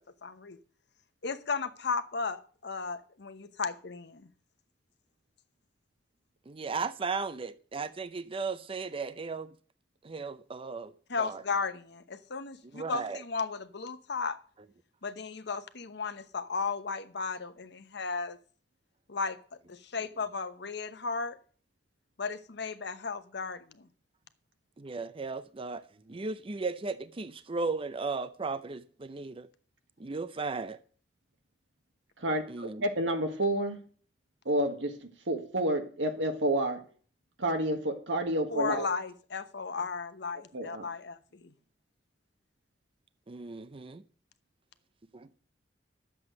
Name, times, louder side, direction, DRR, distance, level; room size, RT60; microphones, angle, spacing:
voice 1, 0.2-0.6 1.2-4.3 11.1-14.4 15.0-18.4 19.1-19.4 19.7-21.4 22.2-23.9 38.5-41.5, left 4 dB, 65° left, 0.9 m, -35 dB
voice 2, 6.5-9.5 10.0-10.9 11.2-11.4 12.7-13.2 24.8-29.5 30.0-30.8 32.5-32.8 43.3-44.0 45.1-45.4, right 4 dB, 30° right, 0.6 m, -36 dB
voice 3, 32.2-33.8 34.5-34.9 35.3-36.8 37.4-38.9 40.5-40.9, right 1 dB, 85° right, 1.7 m, -29 dB
11.0 x 7.7 x 6.4 m
head